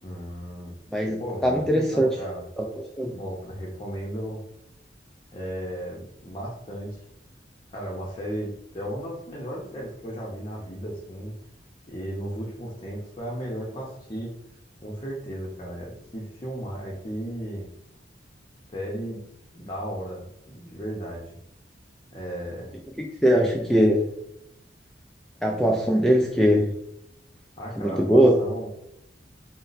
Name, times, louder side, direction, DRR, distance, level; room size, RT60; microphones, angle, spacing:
voice 1, 0.0-0.7 1.2-2.4 3.0-4.4 5.3-7.0 7.7-11.3 11.9-14.3 14.8-17.7 18.7-19.2 19.5-21.4 22.1-22.7 23.3-23.5 27.6-28.7, equal, 30° left, -4 dB, 0.7 m, -35 dB
voice 2, 0.9-2.1 2.6-2.7 3.0-3.1 23.0-24.0 25.4-26.7 27.8-28.4, equal, ahead, 0 dB, 0.3 m, -21 dB
4.1 x 2.1 x 3.9 m, 0.78 s
head